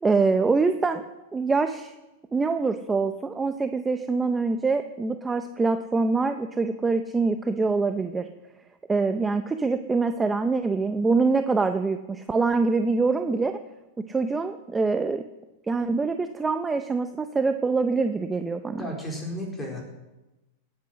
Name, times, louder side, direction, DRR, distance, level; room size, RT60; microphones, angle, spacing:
voice 1, 0.0-1.0 1.3-1.9 2.3-8.3 8.9-13.6 14.1-15.2 15.7-18.8, right 4 dB, 10° right, 8 dB, 0.6 m, -24 dB
voice 2, 18.7-19.8, equal, 10° left, -1 dB, 4.0 m, -33 dB
17.5 x 8.6 x 6.4 m, 1.0 s
supercardioid pair, 140°, 0 cm